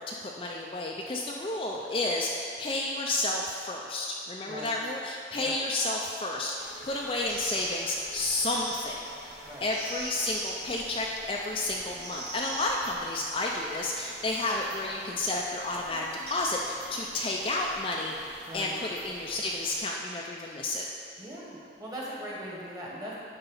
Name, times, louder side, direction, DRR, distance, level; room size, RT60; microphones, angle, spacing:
voice 1, 0.0-9.1 9.6-18.2 18.5-20.8, left 2 dB, 30° left, -1 dB, 0.4 m, -31 dB
sound 1, 6.6-19.8, right 1 dB, 55° right, 1.8 m, -43 dB
voice 2, 18.5-18.8 21.2-23.2, equal, 20° right, -6 dB, 1.5 m, -40 dB
9.7 x 4.0 x 5.5 m, 2.4 s
head